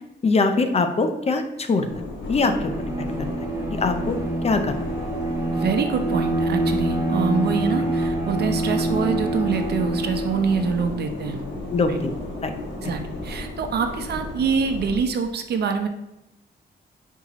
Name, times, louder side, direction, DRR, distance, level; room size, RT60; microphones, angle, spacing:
voice 1, 0.2-2.0 2.3-2.5 3.0-3.3 3.7-4.2 4.4-4.7 11.7-12.1 12.4-12.5, left 3 dB, 35° left, 7 dB, 0.7 m, -22 dB
sound 1, 1.8-15.0, left 2 dB, 75° left, 1.9 m, -34 dB
Bowed string instrument, 2.4-10.9, right 2 dB, 15° right, 1.3 m, -26 dB
voice 2, 5.5-11.4 11.9-12.0 12.8-15.9, right 5 dB, 65° right, 6 dB, 0.8 m, -25 dB
9.7 x 4.6 x 3.1 m, 0.91 s
wide cardioid pair, 130°, 18 cm